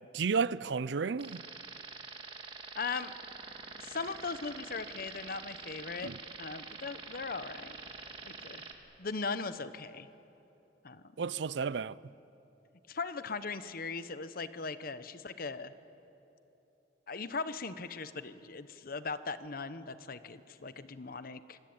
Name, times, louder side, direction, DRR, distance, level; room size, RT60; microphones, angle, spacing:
voice 1, 0.1-1.4 6.0-6.2 11.2-12.1, right 5 dB, 70° right, 0.5 m, -32 dB
sound 1, 1.2-8.7, right 4 dB, 30° right, 1.8 m, -46 dB
voice 2, 2.8-3.1 3.8-6.1 6.4-7.8 8.2-8.6 9.0-10.1 10.8-11.0 12.9-15.7 17.1-21.6, left 4 dB, 55° left, 0.9 m, -39 dB
25.5 x 19.5 x 8.8 m
head